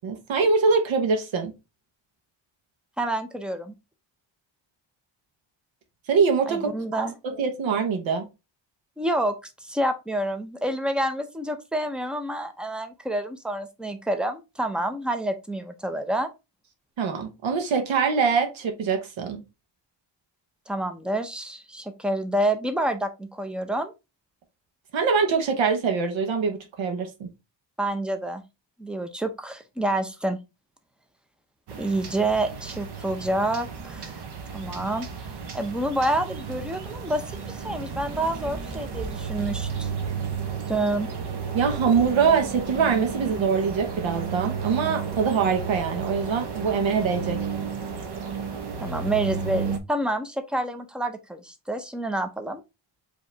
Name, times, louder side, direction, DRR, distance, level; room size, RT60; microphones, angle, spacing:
voice 1, 0.0-1.5 6.1-8.3 17.0-19.4 24.9-27.3 41.5-47.4, right 5 dB, 80° right, 1.1 m, -24 dB
voice 2, 3.0-3.7 6.5-7.1 9.0-16.3 20.7-23.9 27.8-28.4 28.8-30.4 31.8-34.1 34.5-39.9 40.7-41.1 48.8-52.6, right 1 dB, ahead, 0.4 m, -28 dB
sound 1, 31.7-49.8, right 6 dB, 60° right, 0.9 m, -33 dB
5.0 x 2.9 x 3.2 m
wide cardioid pair, 170°, 45 cm